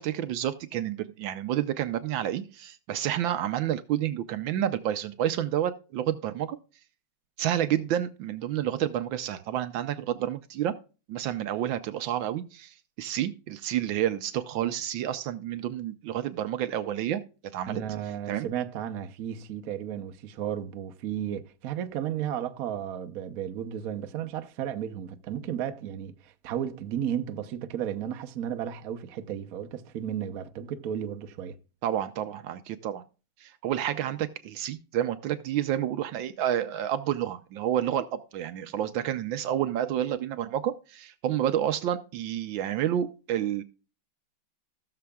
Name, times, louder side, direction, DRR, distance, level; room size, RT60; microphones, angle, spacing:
voice 1, 0.0-6.6 7.4-10.7 11.1-17.2 17.5-17.8 18.3-18.5 31.8-33.0 33.4-43.6, right 11 dB, 75° right, 1.3 m, -29 dB
voice 2, 17.7-31.6, right 9 dB, 60° right, 1.0 m, -34 dB
17.0 x 6.8 x 2.3 m
omnidirectional pair, 2.3 m